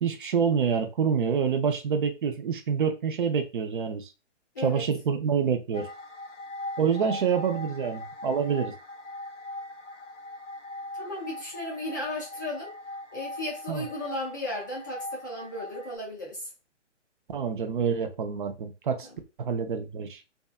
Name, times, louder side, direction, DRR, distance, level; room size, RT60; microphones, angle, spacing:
voice 1, 0.0-4.1 4.6-5.9 6.8-8.7 13.7-13.9 17.3-19.1 19.4-20.2, right 7 dB, 45° right, 0.4 m, -27 dB
voice 2, 4.5-4.9 11.0-12.7 13.1-16.5, left 1 dB, 20° left, 0.3 m, -35 dB
sound 1, 5.7-16.0, left 1 dB, 85° left, 0.6 m, -40 dB
2.6 x 2.3 x 2.4 m
hypercardioid pair, 135°, 36 cm